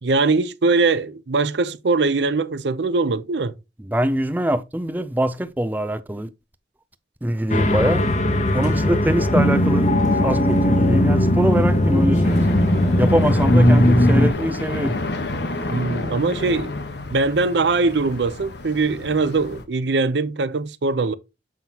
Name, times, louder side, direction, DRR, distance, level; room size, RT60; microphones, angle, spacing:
voice 1, 0.0-3.5 15.7-16.7 17.1-21.1, right 3 dB, 85° right, 0.6 m, -21 dB
voice 2, 3.8-6.3 7.2-8.0 8.5-12.6 13.0-15.0, right 1 dB, 10° right, 0.4 m, -23 dB
sound 1, 7.5-14.3, left 1 dB, 40° left, 1.0 m, -18 dB
sound 2, 12.2-19.6, left 2 dB, 75° left, 1.1 m, -30 dB
7.4 x 5.7 x 2.8 m
head